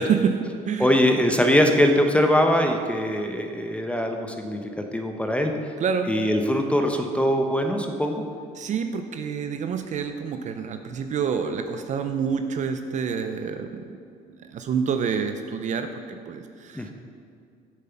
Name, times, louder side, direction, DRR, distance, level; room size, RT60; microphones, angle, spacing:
voice 1, 0.0-0.9 5.8-6.1 8.6-13.9 14.4-16.9, right 6 dB, 45° right, 7 dB, 0.6 m, -27 dB
voice 2, 0.8-4.6 4.9-5.5 6.1-8.3 16.7-16.9, equal, 5° left, 4 dB, 0.8 m, -22 dB
7.6 x 7.4 x 5.8 m, 2.3 s
cardioid pair, 100°, 17 cm